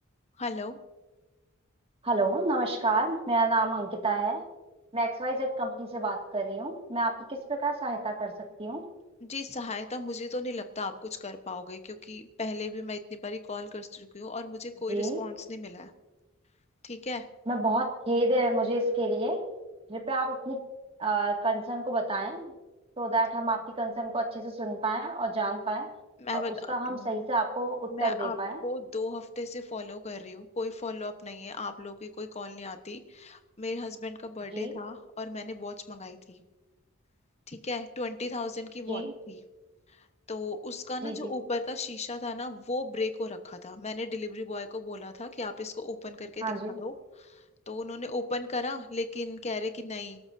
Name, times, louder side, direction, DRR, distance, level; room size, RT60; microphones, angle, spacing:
voice 1, 0.4-0.8 9.2-15.9 16.8-17.2 26.2-26.5 26.9-27.1 27.9-28.4 28.6-36.4 37.5-39.4 40.3-50.2, left 3 dB, 35° left, 8 dB, 1.1 m, -36 dB
voice 2, 2.0-4.4 4.9-8.3 8.6-8.8 14.9-15.2 17.5-19.4 19.9-20.6 21.0-22.5 23.0-25.9 26.3-26.4 26.7-28.6 34.5-34.7 38.9-39.1 41.0-41.3 46.4-46.8, right 2 dB, 30° right, 2 dB, 2.2 m, -29 dB
27.0 x 13.0 x 2.7 m, 1.2 s
head